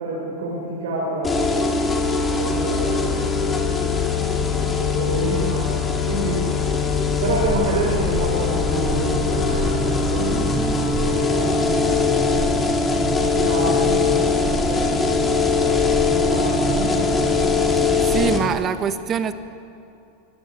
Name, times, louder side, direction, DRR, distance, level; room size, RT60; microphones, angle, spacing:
voice 1, 0.0-1.7 2.3-3.7 4.3-6.4 7.2-14.0 14.4-15.2 15.5-17.4, right 2 dB, 80° right, -4 dB, 6.6 m, -28 dB
sound 1, 1.2-18.4, left 5 dB, 20° left, 2.9 m, -21 dB
sound 2, 7.2-18.6, right 3 dB, 15° right, 1.2 m, -30 dB
voice 2, 17.7-19.3, right 7 dB, 30° right, 10 dB, 1.4 m, -24 dB
24.5 x 15.5 x 8.6 m, 2.8 s
supercardioid pair, 120°, 0 cm